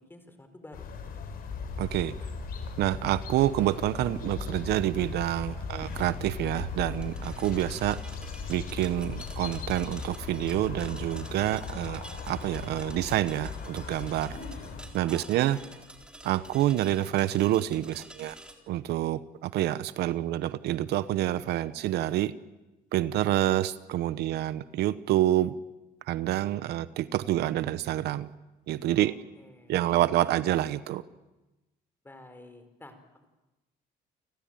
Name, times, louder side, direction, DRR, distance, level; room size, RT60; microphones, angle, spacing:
voice 1, 0.1-0.9 15.0-15.7 28.9-29.8 32.0-33.0, left 2 dB, 10° left, 8 dB, 4.6 m, -50 dB
sound 1, 0.7-14.8, left 5 dB, 60° left, 5.6 m, -38 dB
voice 2, 1.8-2.1 2.8-8.0 8.5-14.3 14.9-15.6 16.2-18.4 18.7-22.3 22.9-25.5 26.1-28.3 28.7-29.1 29.7-31.0, right 14 dB, 75° right, 15 dB, 1.0 m, -27 dB
sound 2, 5.8-18.5, right 1 dB, 5° right, 4.0 m, -49 dB
29.5 x 19.0 x 9.1 m, 1.1 s
cardioid pair, 110°, 17 cm